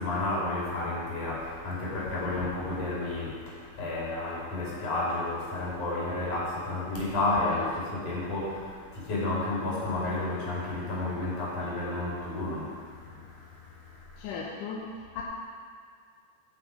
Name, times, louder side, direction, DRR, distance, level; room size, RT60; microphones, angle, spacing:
voice 1, 0.0-14.4, left 2 dB, 55° left, -6 dB, 4.0 m, -32 dB
voice 2, 14.2-15.2, left 5 dB, 70° left, -3 dB, 2.2 m, -37 dB
15.5 x 6.4 x 5.1 m, 2.1 s
omnidirectional pair, 4.5 m